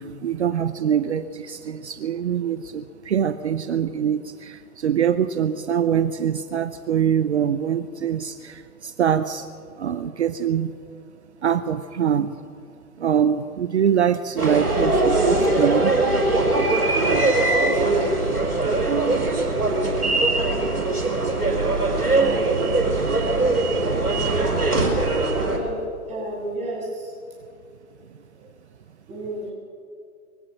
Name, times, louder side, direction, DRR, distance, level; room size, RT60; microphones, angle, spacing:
voice 1, 0.2-4.2 4.8-8.3 9.0-9.4 9.8-10.7 11.4-12.3 13.0-15.9, right 8 dB, 50° right, 12 dB, 0.8 m, -23 dB
sound 1, 14.4-25.6, right 2 dB, 80° right, 5.6 m, -21 dB
voice 2, 25.3-27.1 28.3-28.4 29.1-29.5, right 1 dB, 15° right, -5 dB, 7.5 m, -31 dB
22.5 x 16.0 x 7.5 m, 2.4 s
figure-of-eight pair, 120°, 44 cm